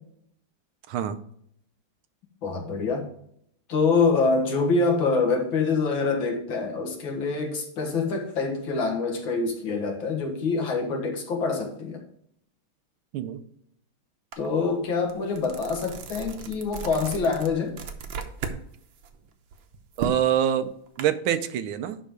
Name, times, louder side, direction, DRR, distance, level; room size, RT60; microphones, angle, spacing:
voice 1, 0.9-1.2 13.1-13.4 20.0-20.7 21.0-22.0, right 10 dB, 85° right, 11 dB, 1.5 m, -25 dB
voice 2, 2.4-3.1 3.7-12.0 14.4-17.8, left 4 dB, 70° left, 1 dB, 2.3 m, -25 dB
sound 1, 14.3-14.5 14.9-18.6 19.0-21.0, right 6 dB, 70° right, 1.5 m, -36 dB
11.0 x 3.8 x 4.9 m, 0.69 s
omnidirectional pair, 2.2 m